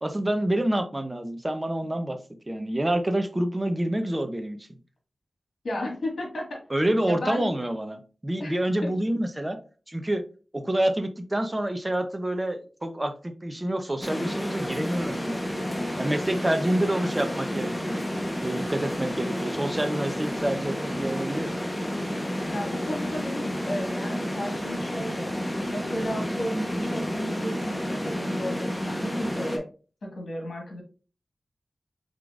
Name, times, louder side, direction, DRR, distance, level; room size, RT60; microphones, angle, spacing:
voice 1, 0.0-2.2 2.5-4.6 6.7-9.6 9.9-10.2 10.5-15.4 16.0-18.0 18.4-21.5, right 1 dB, 25° right, 8 dB, 0.7 m, -27 dB
voice 2, 5.6-6.6 7.1-7.5 8.4-8.5 8.8-8.9 22.5-25.3 25.7-29.7 30.0-30.8, equal, 80° left, 0 dB, 1.7 m, -33 dB
sound 1, 14.0-29.6, equal, 15° left, 1.0 m, -30 dB
4.9 x 3.7 x 2.4 m, 0.36 s
wide cardioid pair, 60°, 0 cm